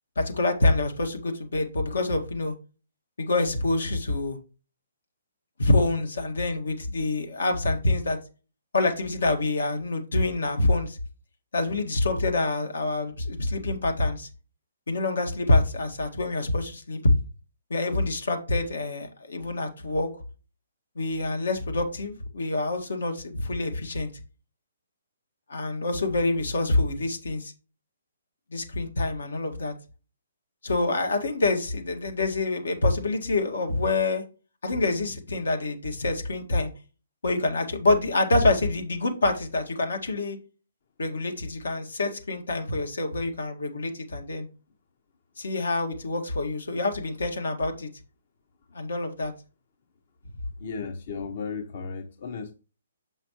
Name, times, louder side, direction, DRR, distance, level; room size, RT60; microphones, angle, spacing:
voice 1, 0.2-2.5 3.2-4.4 5.6-8.2 8.7-11.0 11.5-14.3 14.9-17.0 17.7-20.1 21.0-24.1 25.5-27.5 28.5-29.7 30.6-34.2 34.6-36.7 37.2-40.4 41.0-44.5 45.4-47.9 48.7-49.3, left 2 dB, 85° left, 4 dB, 1.7 m, -26 dB
voice 2, 50.6-52.5, left 5 dB, 50° left, 7 dB, 0.8 m, -35 dB
7.0 x 5.6 x 3.0 m, 0.34 s
hypercardioid pair, 155°, 0 cm